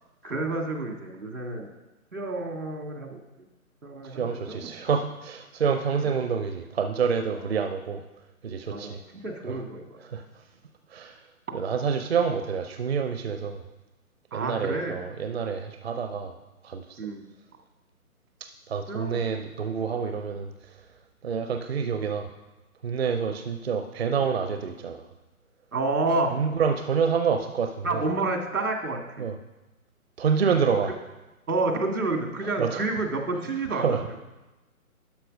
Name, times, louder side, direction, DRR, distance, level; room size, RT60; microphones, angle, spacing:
voice 1, 0.2-1.7 2.1-3.2 3.8-4.6 6.0-6.2 7.3-7.6 8.7-10.0 14.3-14.9 17.0-17.2 18.9-19.2 23.3-23.4 25.7-26.3 27.8-29.2 30.9-31.0 31.5-34.2, right 2 dB, 75° right, 3 dB, 2.1 m, -29 dB
voice 2, 4.0-8.0 8.4-9.0 9.5-9.6 10.1-10.2 10.9-11.2 11.5-13.6 14.3-16.3 16.6-17.0 18.7-20.5 21.2-22.3 22.8-25.1 26.3-28.0 29.2-29.4 30.2-30.9 32.4-32.8 33.7-34.0, right 6 dB, 45° right, 7 dB, 0.7 m, -27 dB
12.0 x 5.8 x 5.2 m, 1.1 s
figure-of-eight pair, 145°, 44 cm